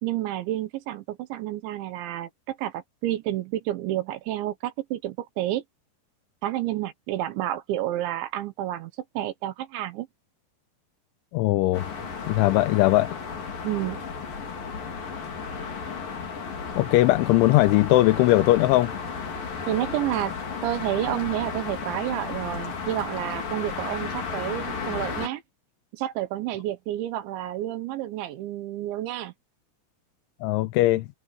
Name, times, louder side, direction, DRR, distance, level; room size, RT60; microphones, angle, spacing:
voice 1, 0.0-5.6 6.4-10.1 13.6-14.0 19.7-20.3 20.6-25.4 25.9-29.3, right 14 dB, 75° right, 3.4 m, -30 dB
voice 2, 11.3-11.9 12.3-13.2 16.8-18.9 30.4-31.1, left 17 dB, 85° left, 3.2 m, -20 dB
sound 1, 11.7-25.3, left 5 dB, 50° left, 5.8 m, -34 dB
omnidirectional pair, 5.5 m